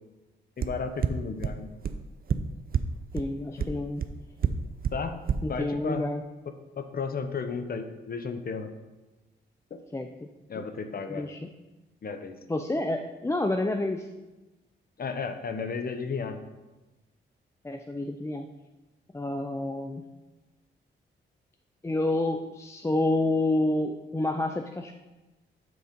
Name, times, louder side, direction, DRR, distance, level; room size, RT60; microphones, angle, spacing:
voice 1, 0.6-1.7 3.6-3.7 4.9-5.2 5.5-6.0 6.8-8.7 9.7-9.8 10.5-11.3 12.0-12.3 15.0-16.4, left 5 dB, 50° left, 8 dB, 0.8 m, -33 dB
sound 1, 0.6-0.7 1.0-1.1 1.4-1.5 1.8-1.9 2.3-2.4 2.7-2.8 3.2-3.3 3.6-3.7 4.0-4.1 4.4-4.5 4.8-4.9 5.3-5.4, right 8 dB, 50° right, 0.5 m, -24 dB
voice 2, 3.1-4.0 5.4-6.2 9.9-10.3 10.6-10.7 11.1-11.5 12.5-14.1 17.6-18.5 19.1-20.0 21.8-24.9, left 2 dB, 15° left, 5 dB, 0.4 m, -29 dB
7.6 x 3.9 x 5.2 m, 1.1 s
cardioid pair, 70°, 20 cm